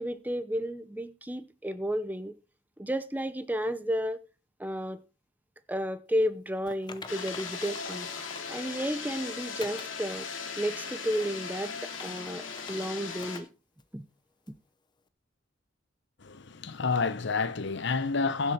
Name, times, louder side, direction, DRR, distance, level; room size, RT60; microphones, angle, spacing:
voice 1, 0.0-2.3 2.8-4.2 4.6-5.0 5.7-8.1 8.5-10.3 10.6-13.5 13.9-14.0, equal, 10° right, 0.8 m, -32 dB
Typing, 6.7-9.0 9.6-9.9 10.4-10.5 11.0-12.9 13.2-13.4 13.8-13.9 14.5-14.6, left 4 dB, 25° left, 0.8 m, -47 dB
sound 1, 7.1-13.4, left 5 dB, 85° left, 2.4 m, -38 dB
voice 2, 16.2-18.5, left 4 dB, 65° left, 0.8 m, -29 dB
16.0 x 7.5 x 4.3 m
head